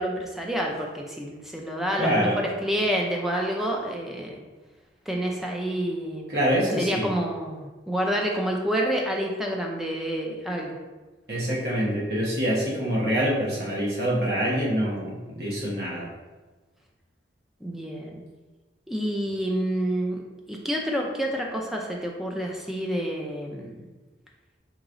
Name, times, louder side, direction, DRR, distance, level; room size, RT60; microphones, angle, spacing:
voice 1, 0.0-4.4 5.1-6.4 6.8-10.8 17.6-18.2 18.9-20.2 20.5-23.9, equal, ahead, 0 dB, 0.4 m, -28 dB
voice 2, 2.0-2.4 6.3-7.1 11.3-16.1, equal, 60° right, -5 dB, 1.0 m, -25 dB
4.6 x 3.0 x 2.5 m, 1.2 s
head